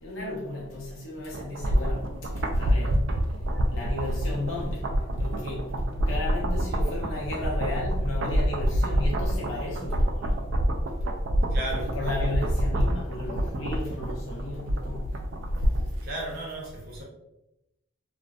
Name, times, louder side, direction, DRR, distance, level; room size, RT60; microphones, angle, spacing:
voice 1, 0.0-2.1 2.6-2.9 3.7-4.9 5.2-5.7 6.1-10.4 11.4-15.1, left 2 dB, 75° left, -3 dB, 0.8 m, -34 dB
sound 1, 1.3-16.0 16.3-16.4, equal, 65° right, 0.3 m, -27 dB
voice 2, 3.5-4.4 11.5-11.9 16.0-17.0, right 1 dB, 50° right, -3 dB, 0.7 m, -36 dB
2.5 x 2.1 x 2.3 m, 0.87 s
head